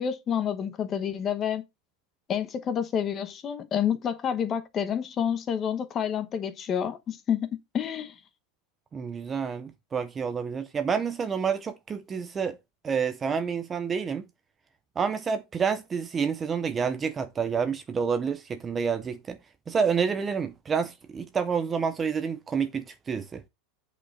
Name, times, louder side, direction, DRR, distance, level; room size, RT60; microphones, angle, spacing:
voice 1, 0.0-1.6 2.3-8.1, left 8 dB, 20° left, 1.0 m, -29 dB
voice 2, 8.9-12.6 12.8-14.2 15.0-19.4 19.7-23.4, right 6 dB, 15° right, 0.5 m, -28 dB
8.7 x 5.1 x 4.1 m
supercardioid pair, 175°, 0 cm